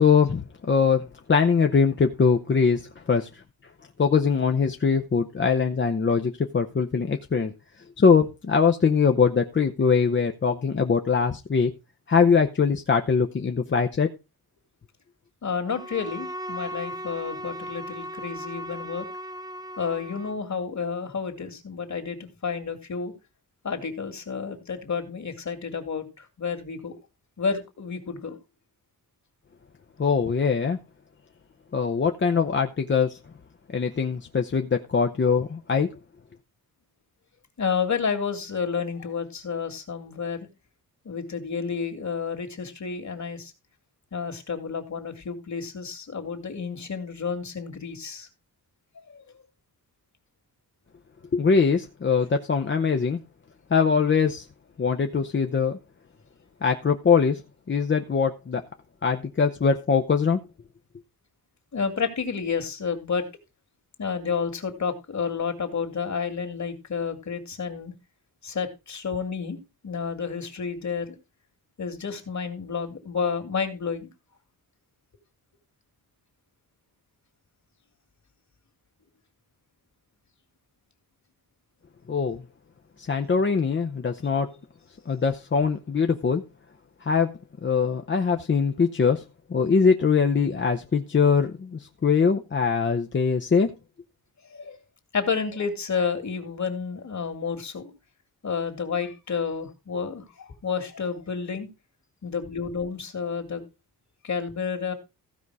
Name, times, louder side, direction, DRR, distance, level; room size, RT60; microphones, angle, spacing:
voice 1, 0.0-3.4 4.0-7.5 8.0-11.7 12.1-14.1 30.0-30.8 31.7-33.2 33.7-35.9 51.3-53.2 53.7-54.5 54.8-55.8 56.6-57.4 57.7-58.6 59.0-60.4 82.1-82.4 83.0-84.5 85.1-86.4 87.0-87.3 87.6-89.2 89.5-93.7, left 5 dB, 30° left, 5 dB, 0.8 m, -22 dB
voice 2, 15.4-19.1 19.8-23.1 23.6-26.9 27.4-28.4 37.6-40.5 41.1-43.5 44.1-48.3 49.1-49.2 61.7-63.2 64.0-67.9 68.4-69.6 69.8-71.1 71.8-74.1 94.5-94.8 95.1-97.9 98.4-101.7 102.2-103.6 104.2-104.9, left 5 dB, 50° left, 7 dB, 2.5 m, -30 dB
Bowed string instrument, 15.7-20.5, equal, 10° right, 0.5 m, -37 dB
15.5 x 5.4 x 4.8 m, 0.27 s
wide cardioid pair, 140°, 37 cm